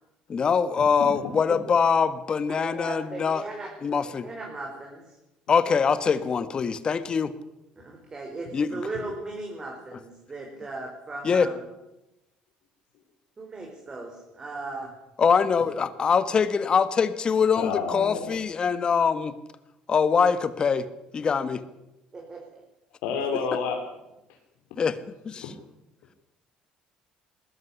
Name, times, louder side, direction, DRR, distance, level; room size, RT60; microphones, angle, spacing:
voice 1, 0.3-3.4 3.8-4.3 5.5-7.3 8.5-8.8 11.2-11.5 15.2-19.4 19.9-20.9 21.1-21.6 24.8-25.0 25.2-25.5, left 6 dB, 35° left, 13 dB, 1.6 m, -23 dB
voice 2, 2.5-3.7 4.2-5.2 7.8-11.6 13.4-14.9 22.1-22.6, right 2 dB, 25° right, 0 dB, 4.6 m, -37 dB
voice 3, 17.6-18.4 23.0-23.8 25.4-25.5, left 6 dB, 85° left, 1 dB, 3.3 m, -29 dB
20.0 x 13.5 x 10.0 m, 0.94 s
cardioid pair, 110°, 3 cm